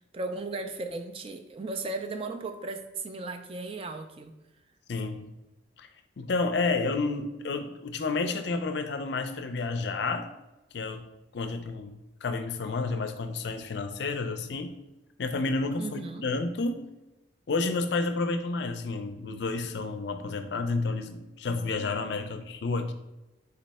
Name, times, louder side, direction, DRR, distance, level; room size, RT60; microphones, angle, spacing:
voice 1, 0.1-4.4 15.8-16.2, right 3 dB, 30° right, 7 dB, 0.3 m, -36 dB
voice 2, 4.9-5.3 5.8-5.9 6.2-10.3 10.7-11.1 11.3-11.9 12.2-14.7 15.2-16.9 17.5-22.9, left 3 dB, 60° left, 7 dB, 0.4 m, -30 dB
4.0 x 3.1 x 4.1 m, 1.0 s
head